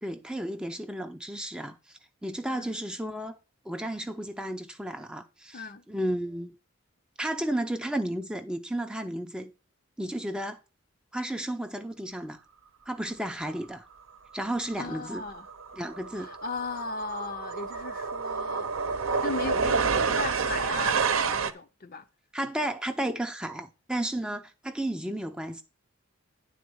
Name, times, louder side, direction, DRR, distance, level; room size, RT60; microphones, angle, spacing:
voice 1, 0.0-3.4 3.7-6.5 7.2-9.5 10.0-10.6 11.1-12.4 12.9-13.9 14.3-15.2 15.7-16.3 22.3-25.6, right 1 dB, 5° right, 0.4 m, -33 dB
voice 2, 5.5-5.9 14.8-15.5 16.2-22.1, left 4 dB, 45° left, 0.6 m, -37 dB
sound 1, 14.7-14.9 15.2-21.5, right 5 dB, 80° right, 0.7 m, -29 dB
9.8 x 4.0 x 6.3 m
head